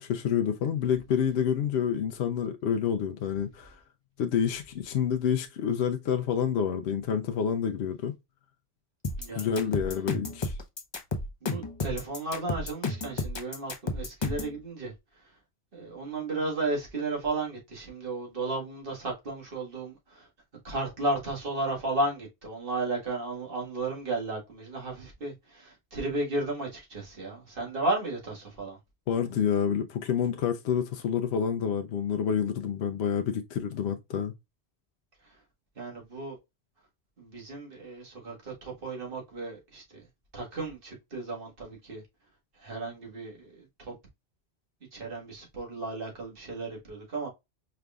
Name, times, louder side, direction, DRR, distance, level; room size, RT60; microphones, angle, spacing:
voice 1, 0.0-3.8 4.2-8.1 9.3-10.6 29.1-34.3, left 8 dB, 70° left, 0.8 m, -28 dB
sound 1, 9.0-14.6, left 3 dB, 30° left, 0.5 m, -32 dB
voice 2, 9.2-9.7 11.4-14.9 15.7-20.3 20.6-28.8 35.8-36.4 37.2-40.0 40.3-42.0 42.6-43.9 44.9-47.3, right 2 dB, 50° right, 1.8 m, -34 dB
4.9 x 3.4 x 2.3 m
omnidirectional pair, 1.1 m